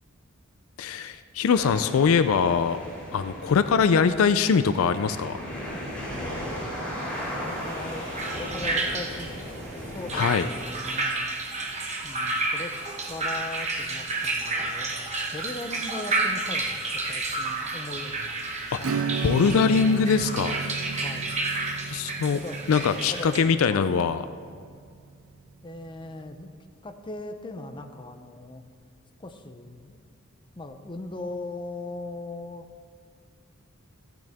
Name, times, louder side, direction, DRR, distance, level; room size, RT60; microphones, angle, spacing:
voice 1, 0.8-2.8 3.1-5.4 10.1-10.5 18.7-20.6 21.9-22.4 22.7-24.2, left 6 dB, 70° left, 11 dB, 0.4 m, -22 dB
sound 1, 1.5-10.7, equal, 5° left, 3.1 m, -36 dB
voice 2, 7.2-11.8 12.0-12.8 13.1-14.9 15.3-18.4 18.8-20.6 21.0-21.4 22.3-24.0 25.6-26.5 26.8-28.6 29.2-30.0 30.6-32.7, left 2 dB, 25° left, 7 dB, 0.6 m, -39 dB
sound 2, 7.5-23.4, right 2 dB, 35° right, 1.1 m, -31 dB
Acoustic guitar / Strum, 18.8-25.0, right 5 dB, 70° right, 0.5 m, -34 dB
14.5 x 9.1 x 3.5 m, 2.2 s
head